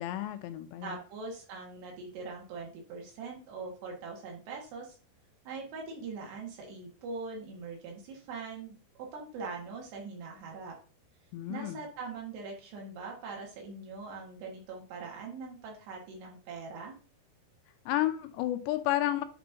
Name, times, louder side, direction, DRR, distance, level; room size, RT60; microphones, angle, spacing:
voice 1, 0.0-1.0 11.3-11.8 17.9-19.2, left 14 dB, 85° left, 9 dB, 2.9 m, -31 dB
voice 2, 0.8-5.0 5.5-10.8 11.5-17.0, right 4 dB, 75° right, -1 dB, 3.9 m, -42 dB
10.0 x 4.3 x 2.9 m, 0.37 s
omnidirectional pair, 5.0 m